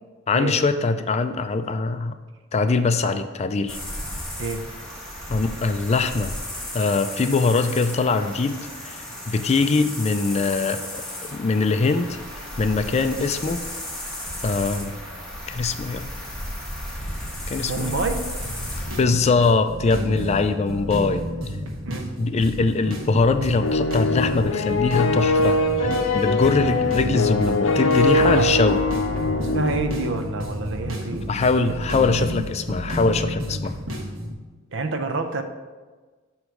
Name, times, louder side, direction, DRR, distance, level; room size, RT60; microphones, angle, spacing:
voice 1, 0.3-2.1 2.5-3.8 5.3-6.3 6.7-10.8 11.2-12.2 12.6-13.6 14.4-15.0 15.5-16.1 17.5-18.0 19.0-21.2 22.2-28.8 31.3-33.7, left 4 dB, 35° left, 9 dB, 0.4 m, -22 dB
sound 1, 3.7-19.0, left 1 dB, 5° left, 1.4 m, -34 dB
voice 2, 17.6-18.2 21.8-22.1 27.5-27.6 28.2-28.5 29.5-31.8 34.7-35.4, right 3 dB, 65° right, 7 dB, 0.6 m, -28 dB
sound 2, 18.4-34.3, equal, 85° right, 1.3 m, -32 dB
sound 3, 23.6-30.6, left 2 dB, 70° left, 0.6 m, -22 dB
7.9 x 3.1 x 6.3 m, 1.3 s
head